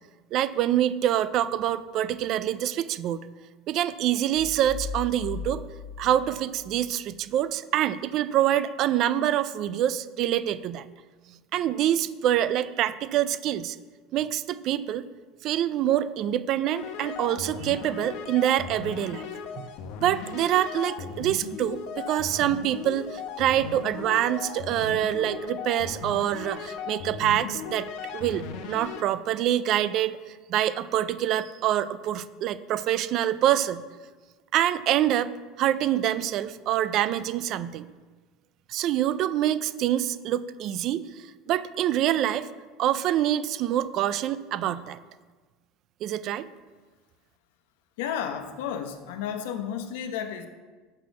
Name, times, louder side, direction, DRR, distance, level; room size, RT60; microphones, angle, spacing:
voice 1, 0.3-3.3 3.7-5.6 6.0-10.8 11.5-13.8 14.1-15.0 15.4-19.3 19.6-19.7 20.0-27.9 28.1-30.2 30.5-33.8 34.5-35.3 35.6-37.9 38.7-41.1 41.5-42.5 42.8-45.0 46.0-46.5, right 12 dB, 45° right, 15 dB, 0.4 m, -26 dB
sound 1, 4.3-7.3, left 6 dB, 25° left, 0.6 m, -38 dB
sound 2, 16.7-29.0, left 6 dB, 60° left, 0.8 m, -37 dB
voice 2, 48.0-50.5, left 8 dB, 85° left, 7 dB, 0.9 m, -32 dB
6.6 x 6.0 x 7.2 m, 1.3 s
cardioid pair, 155°, 0 cm